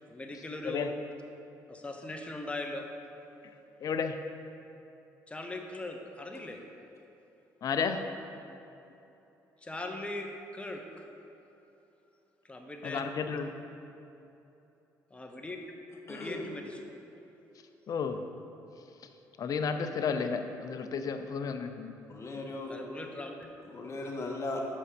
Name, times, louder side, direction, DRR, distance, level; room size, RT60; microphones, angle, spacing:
voice 1, 0.1-1.0 1.7-2.9 5.3-6.6 9.6-11.1 12.4-13.0 15.1-15.6 16.1-16.9 22.7-23.5, left 2 dB, 15° left, 1.0 m, -40 dB
voice 2, 3.8-4.2 7.6-8.0 12.8-13.5 17.9-18.2 19.4-21.9, left 6 dB, 55° left, 0.6 m, -32 dB
voice 3, 16.1-16.5 22.1-22.7 23.7-24.7, left 2 dB, 40° left, 1.4 m, -37 dB
6.2 x 5.4 x 6.8 m
cardioid pair, 80°, 7 cm